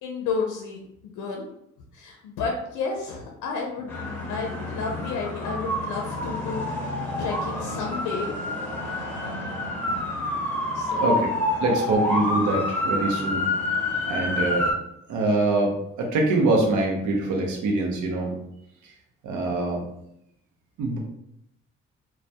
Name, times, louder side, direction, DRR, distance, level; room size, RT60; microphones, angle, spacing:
voice 1, 0.0-1.4 1.9-4.0 4.3-8.3 10.7-11.1, left 4 dB, 85° left, 1 dB, 0.5 m, -31 dB
sound 1, 3.9-14.7, left 1 dB, 5° left, 0.9 m, -28 dB
voice 2, 11.6-13.4 14.1-14.7 15.1-18.3 19.2-19.8 20.8-21.0, right 2 dB, 75° right, 0 dB, 0.7 m, -24 dB
2.1 x 2.1 x 2.7 m, 0.77 s
cardioid pair, 90°, 30 cm